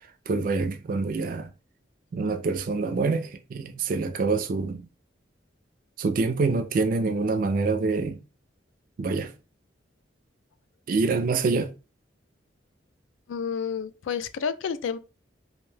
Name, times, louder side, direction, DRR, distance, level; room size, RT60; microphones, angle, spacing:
voice 1, 0.3-1.5 2.1-4.9 6.0-8.2 9.0-9.3 10.9-11.7, right 3 dB, 50° right, 0.3 m, -26 dB
voice 2, 13.3-15.0, left 6 dB, 85° left, 0.3 m, -30 dB
2.6 x 2.1 x 3.2 m
head